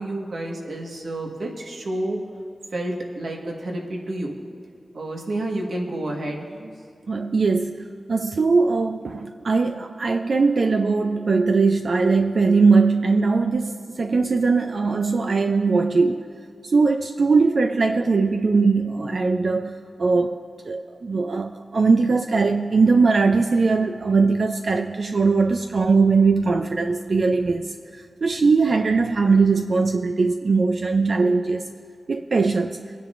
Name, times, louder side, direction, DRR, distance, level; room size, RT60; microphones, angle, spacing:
voice 1, 0.0-2.2 2.7-4.3 4.9-6.7, right 1 dB, 85° right, 0 dB, 1.5 m, -30 dB
voice 2, 7.1-16.2 16.6-20.4 20.6-31.7 32.1-32.8, right 4 dB, 65° right, 5 dB, 0.4 m, -20 dB
23.5 x 10.0 x 2.6 m, 2.3 s
wide cardioid pair, 90°, 0 cm